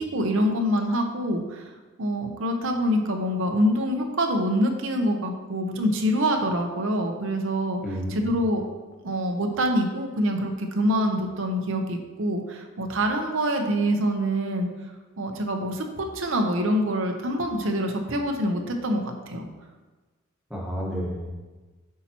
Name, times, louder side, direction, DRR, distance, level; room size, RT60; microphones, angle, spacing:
voice 1, 0.0-1.7 2.0-7.8 8.1-8.6 9.0-14.7 15.2-19.5, equal, 65° right, 4 dB, 0.8 m, -25 dB
voice 2, 7.8-8.3 20.5-21.3, equal, ahead, -4 dB, 1.2 m, -31 dB
8.3 x 5.7 x 2.9 m, 1.2 s
head